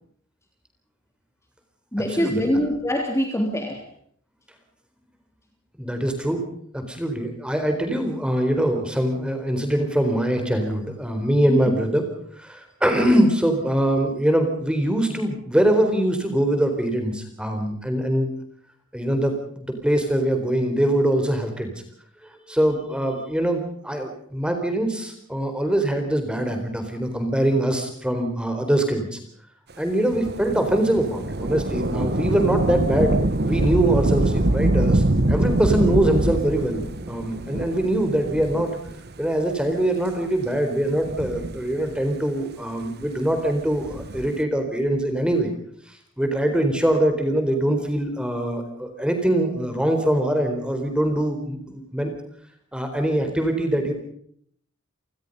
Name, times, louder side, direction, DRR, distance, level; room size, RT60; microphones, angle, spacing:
voice 1, 1.9-3.8 11.5-11.8, equal, 15° left, 2 dB, 3.5 m, -24 dB
voice 2, 5.8-6.4 6.7-12.0 12.4-18.3 18.9-21.7 22.5-29.2 29.8-33.2 33.5-38.7 39.2-45.5 46.2-52.1 52.7-53.9, right 1 dB, 5° right, 5 dB, 4.1 m, -23 dB
Thunder / Rain, 30.1-39.1 39.8-39.9 40.9-42.1 43.7-44.4, right 1 dB, 50° right, 1.2 m, -24 dB
30.0 x 19.5 x 5.5 m, 0.64 s
head